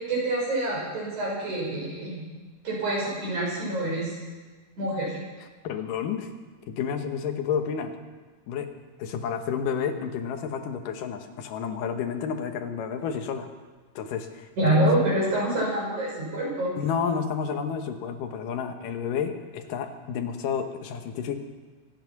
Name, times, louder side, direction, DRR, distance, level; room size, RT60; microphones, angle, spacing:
voice 1, 0.1-2.2 2.6-4.1 4.8-5.2 14.6-16.7, right 1 dB, 60° right, -4 dB, 7.5 m, -26 dB
voice 2, 5.6-6.3 6.7-8.0 8.5-8.7 9.0-13.5 14.0-14.9 16.8-21.4, left 7 dB, 80° left, 6 dB, 2.8 m, -30 dB
24.5 x 9.7 x 5.9 m, 1.3 s
omnidirectional pair, 3.8 m